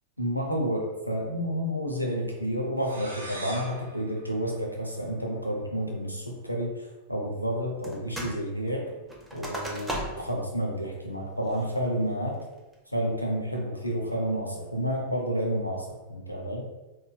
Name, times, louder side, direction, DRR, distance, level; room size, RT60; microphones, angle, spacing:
voice 1, 0.2-8.9 9.3-12.4 12.9-16.7, equal, 90° left, -1 dB, 0.5 m, -30 dB
sound 1, 2.8-5.4, right 2 dB, 75° right, 0.5 m, -43 dB
sound 2, 7.8-8.4 8.7-10.4 10.8-10.9 11.4-11.8 12.3-12.7, equal, 5° right, 0.6 m, -36 dB
3.8 x 2.3 x 2.2 m, 1.1 s
figure-of-eight pair, 90°, 0 cm